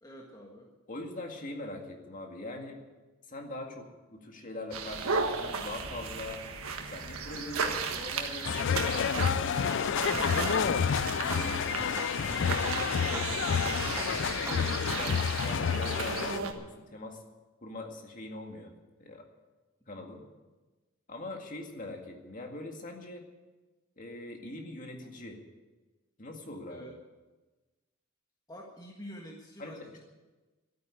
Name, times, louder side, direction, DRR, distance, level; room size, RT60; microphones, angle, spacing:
voice 1, 0.0-0.7 26.7-27.0 28.5-30.0, equal, 20° left, -1 dB, 1.5 m, -47 dB
voice 2, 0.9-2.8 3.3-6.4 6.8-9.6 10.0-11.6 12.3-13.7 14.1-17.2 17.6-18.7 19.0-19.3 19.9-20.2 21.1-23.2 24.0-25.4 26.2-26.8 29.6-30.0, left 2 dB, 40° left, 3 dB, 2.0 m, -42 dB
sound 1, 4.7-16.5, right 4 dB, 80° right, 1.5 m, -35 dB
sound 2, 8.4-16.4, left 7 dB, 60° left, 0.4 m, -29 dB
sound 3, 9.6-15.0, right 2 dB, 15° right, 0.7 m, -43 dB
13.0 x 9.5 x 9.8 m, 1.2 s
head